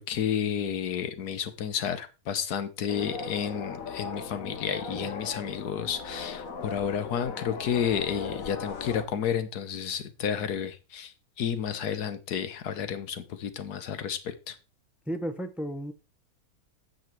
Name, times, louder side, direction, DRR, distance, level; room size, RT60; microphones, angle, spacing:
voice 1, 0.0-14.5, left 8 dB, 85° left, 1.6 m, -31 dB
sound 1, 2.9-9.1, left 4 dB, 60° left, 1.7 m, -38 dB
voice 2, 15.1-15.9, right 1 dB, ahead, 0.8 m, -33 dB
7.9 x 7.6 x 4.6 m
omnidirectional pair, 1.6 m